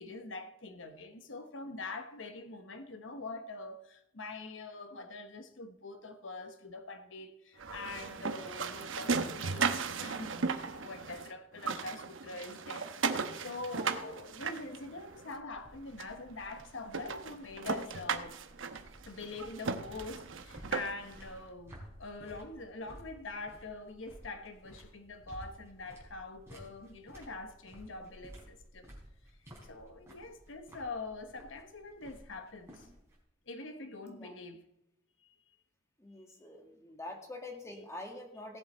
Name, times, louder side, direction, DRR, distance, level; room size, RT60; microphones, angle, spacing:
voice 1, 0.0-18.4 19.1-28.9 29.7-32.9 33.5-34.6 35.2-35.3, left 3 dB, 80° left, 1.1 m, -44 dB
sound 1, 7.6-11.3 11.6-15.3 16.0-16.1 16.5-16.6 16.9-21.2, right 5 dB, 90° right, 0.9 m, -36 dB
sound 2, 14.2-33.2, equal, 15° right, 4.3 m, -55 dB
voice 2, 36.0-38.6, left 2 dB, 15° left, 1.9 m, -45 dB
17.5 x 7.7 x 4.3 m
head